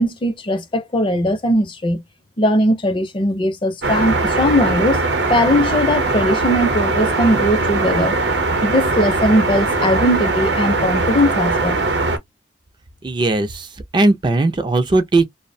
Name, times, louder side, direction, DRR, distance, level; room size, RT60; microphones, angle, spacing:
voice 1, 0.0-2.0 2.4-5.0 5.3-8.2 8.6-11.8, equal, 30° left, 0.5 m, -19 dB
sound 1, 3.8-12.2, right 3 dB, 75° right, 0.7 m, -20 dB
voice 2, 13.0-13.7 13.9-15.2, right 2 dB, 25° right, 0.4 m, -17 dB
2.4 x 2.0 x 2.6 m
head